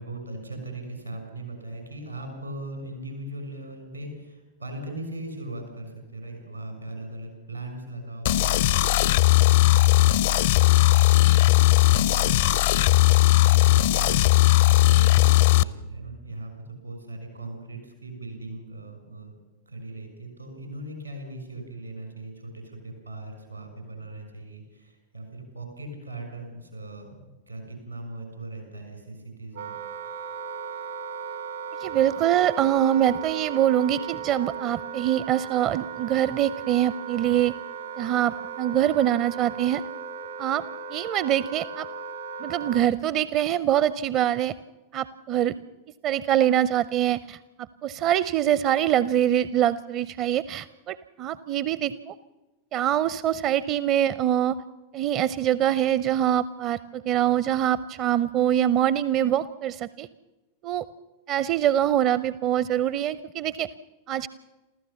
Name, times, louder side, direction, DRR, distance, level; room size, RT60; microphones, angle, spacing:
voice 1, 0.0-10.7 11.2-19.4 19.7-29.7, right 2 dB, 85° right, 5 dB, 6.6 m, -39 dB
sound 1, 8.2-15.6, left 17 dB, 55° left, 0.6 m, -18 dB
Wind instrument woodwind instrument, 29.5-42.9, right 6 dB, 65° right, 1.5 m, -36 dB
voice 2, 31.8-37.5 38.0-39.8 40.4-40.6 40.9-41.9 42.4-44.5 44.9-45.6 46.0-47.4 47.8-52.1 52.7-54.6 54.9-60.1 60.6-60.8 61.3-63.7 64.1-64.3, right 11 dB, 35° right, 18 dB, 0.6 m, -24 dB
28.0 x 15.0 x 7.1 m, 1.1 s
figure-of-eight pair, 90°, 0 cm